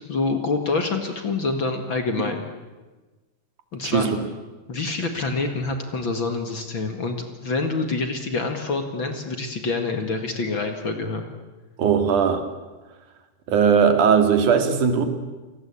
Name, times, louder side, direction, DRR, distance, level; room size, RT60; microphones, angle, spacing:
voice 1, 0.1-2.4 3.7-4.3 4.7-7.2 7.4-11.3, left 3 dB, 40° left, 5 dB, 2.3 m, -26 dB
voice 2, 11.8-12.5 13.5-15.1, right 6 dB, 70° right, 7 dB, 3.4 m, -18 dB
29.0 x 18.5 x 8.6 m, 1.2 s
omnidirectional pair, 3.7 m